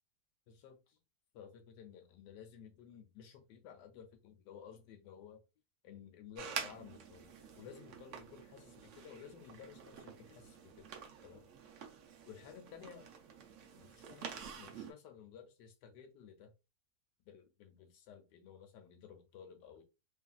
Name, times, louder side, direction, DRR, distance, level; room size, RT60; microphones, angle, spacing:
voice 1, 0.5-1.0 1.3-5.4 5.8-10.9 11.2-11.5 12.2-13.1 13.8-16.5 17.2-19.8, left 8 dB, 85° left, 1.2 m, -55 dB
sound 1, 6.3-14.9, right 7 dB, 65° right, 0.7 m, -48 dB
3.0 x 2.5 x 2.3 m
omnidirectional pair, 1.8 m